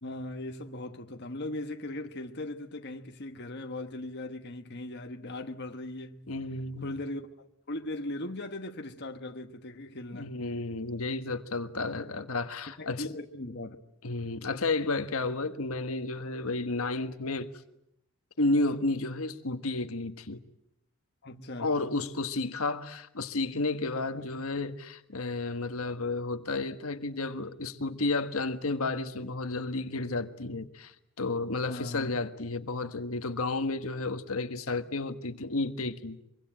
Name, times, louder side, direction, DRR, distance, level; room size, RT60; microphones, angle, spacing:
voice 1, 0.0-6.3 6.8-7.2 7.7-10.3 12.8-13.8 21.2-21.8 24.1-24.4 31.7-32.1, left 1 dB, 50° left, 1.3 m, -39 dB
voice 2, 6.3-7.0 10.1-13.1 14.0-17.5 18.4-20.4 21.6-36.2, left 3 dB, 75° left, 1.5 m, -32 dB
24.5 x 24.0 x 9.0 m
head